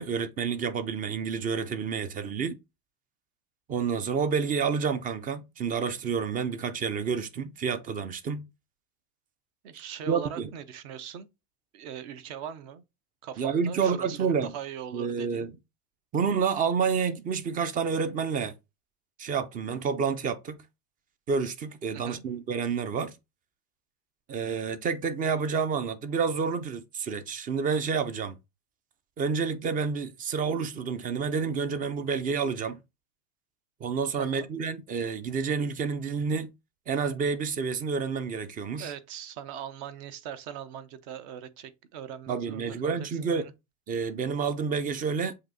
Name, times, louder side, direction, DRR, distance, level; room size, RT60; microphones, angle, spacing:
voice 1, 0.0-2.6 3.7-8.4 10.1-10.5 13.4-14.5 14.9-15.5 16.1-18.5 19.2-20.6 21.3-23.1 24.3-28.4 29.2-32.8 33.8-36.5 36.9-38.9 42.3-43.5 43.9-45.3, right 6 dB, 20° right, 0.4 m, -29 dB
voice 2, 9.6-11.3 11.7-12.8 13.2-15.5 21.9-22.2 34.2-34.5 38.8-43.5, right 9 dB, 50° right, 0.8 m, -41 dB
7.4 x 2.8 x 2.6 m
hypercardioid pair, 90°, 48 cm